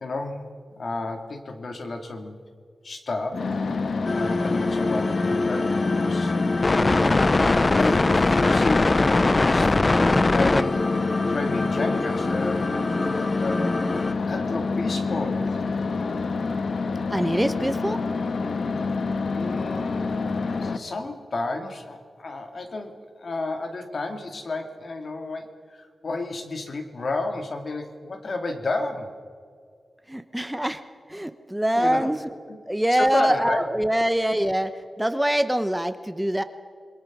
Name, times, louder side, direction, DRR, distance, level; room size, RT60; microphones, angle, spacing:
voice 1, 0.0-0.5 0.8-2.4 2.8-3.5 4.2-6.4 6.9-7.2 7.8-9.8 10.3-10.9 11.3-12.7 13.0-15.6 19.3-20.1 20.6-29.2 31.8-32.1 32.5-32.6 32.9-33.6, left 2 dB, 55° left, 5 dB, 2.3 m, -32 dB
sound 1, 3.3-20.8, left 4 dB, 70° left, 1.1 m, -27 dB
sound 2, 4.1-14.1, left 2 dB, 25° left, 0.5 m, -23 dB
voice 2, 17.1-18.0 30.1-30.8 31.1-32.3 32.7-34.7 35.0-36.4, right 1 dB, 5° right, 10 dB, 0.8 m, -24 dB
27.0 x 22.0 x 6.0 m, 2.2 s
wide cardioid pair, 160°, 0 cm